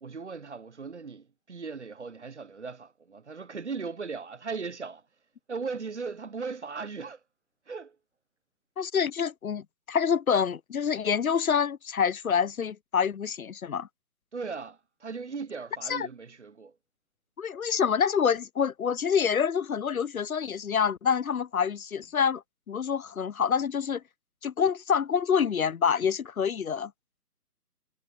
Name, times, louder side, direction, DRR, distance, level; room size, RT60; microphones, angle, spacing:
voice 1, 0.0-5.0 5.5-7.2 7.7-8.0 14.3-16.7, right 4 dB, 45° right, 0.7 m, -38 dB
voice 2, 8.8-13.9 15.9-16.1 17.4-22.4 22.7-24.0 24.4-26.9, left 7 dB, 60° left, 0.6 m, -27 dB
figure-of-eight pair, 165°, 48 cm